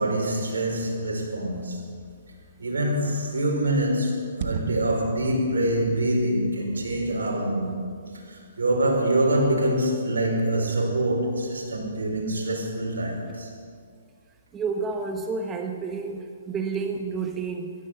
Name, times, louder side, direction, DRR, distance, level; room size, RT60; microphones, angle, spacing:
voice 1, 0.0-1.8 2.6-7.8 8.3-13.5, right 1 dB, 80° right, 0 dB, 4.8 m, -25 dB
sound 1, 3.4-3.5 3.6-3.7 4.4-6.2, right 6 dB, 55° right, 1.2 m, -34 dB
voice 2, 14.5-17.7, right 4 dB, 15° right, 4 dB, 1.2 m, -30 dB
16.0 x 13.5 x 6.8 m, 2.1 s
hypercardioid pair, 135°, 0 cm